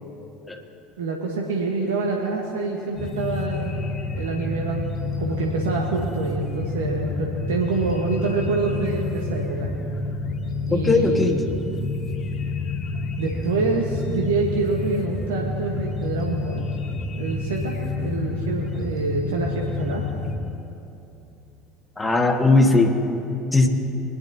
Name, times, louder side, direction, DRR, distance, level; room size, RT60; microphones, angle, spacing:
voice 1, 1.0-3.8 4.1-9.7 10.7-11.3 13.2-16.6 17.1-20.0, right 3 dB, 80° right, 0 dB, 1.1 m, -26 dB
sound 1, 3.0-20.4, left 3 dB, 40° left, 1.3 m, -29 dB
voice 2, 10.7-11.4 22.0-23.0 23.5-23.7, left 3 dB, 15° left, 3 dB, 1.6 m, -18 dB
22.0 x 11.0 x 2.8 m, 2.9 s
hypercardioid pair, 70°, 0 cm